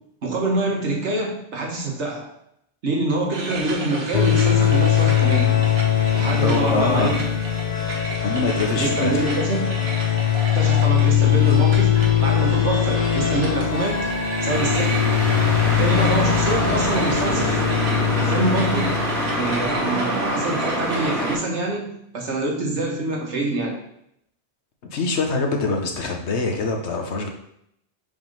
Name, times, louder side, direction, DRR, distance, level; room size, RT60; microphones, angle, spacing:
voice 1, 0.2-2.3 2.8-5.6 6.1-7.3 8.7-9.8 10.5-12.0 12.2-14.0 14.4-15.1 15.6-17.6 18.2-19.0 19.4-23.8, right 2 dB, 80° right, -1 dB, 1.7 m, -25 dB
sound 1, 3.3-21.4, right 2 dB, 65° right, 1.3 m, -34 dB
sound 2, 4.1-20.0, left 10 dB, 50° left, 0.5 m, -21 dB
voice 2, 6.3-7.2 8.2-9.2 15.7-16.0 24.9-27.3, left 3 dB, 75° left, 3 dB, 1.2 m, -24 dB
sound 3, 14.5-21.3, right 1 dB, 15° right, 2.2 m, -25 dB
5.2 x 3.8 x 5.2 m, 0.74 s
omnidirectional pair, 1.2 m